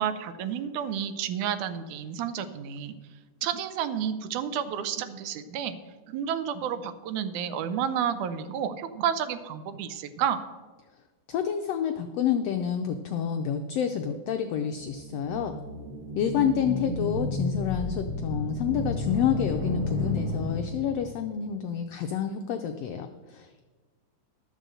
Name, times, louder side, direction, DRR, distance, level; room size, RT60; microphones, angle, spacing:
voice 1, 0.0-2.9 3.4-5.8 6.1-10.4, right 8 dB, 80° right, 12 dB, 2.1 m, -30 dB
voice 2, 11.3-15.5 16.1-23.6, left 8 dB, 85° left, 6 dB, 1.4 m, -29 dB
sound 1, 14.8-21.1, left 2 dB, 45° right, 1.3 m, -32 dB
12.5 x 5.3 x 7.7 m, 1.4 s
omnidirectional pair, 3.5 m